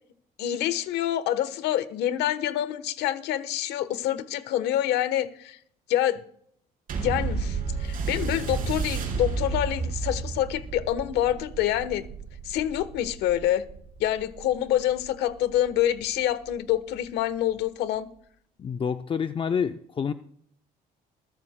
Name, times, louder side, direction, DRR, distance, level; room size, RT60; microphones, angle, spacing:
voice 1, 0.4-5.6 5.9-6.2 6.9-12.0 12.4-13.6 14.0-18.1, left 12 dB, 90° left, 1.1 m, -26 dB
sound 1, 6.9-15.7 16.4-16.5, right 4 dB, 55° right, 4.1 m, -32 dB
voice 2, 18.6-20.1, left 6 dB, 30° left, 0.5 m, -28 dB
21.5 x 13.0 x 2.2 m
cardioid pair, 110°, 17 cm